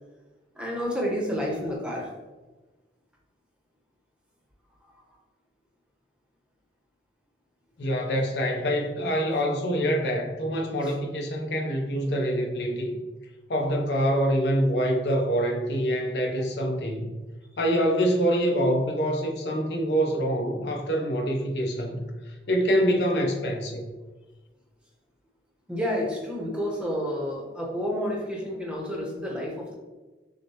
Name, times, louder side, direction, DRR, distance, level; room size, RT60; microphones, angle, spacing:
voice 1, 0.5-2.1 10.8-10.9 25.7-29.7, equal, 5° right, -2 dB, 0.8 m, -30 dB
voice 2, 7.8-13.0 13.5-17.1 17.6-23.8, equal, 70° left, 2 dB, 0.7 m, -25 dB
6.3 x 2.1 x 2.9 m, 1.2 s
head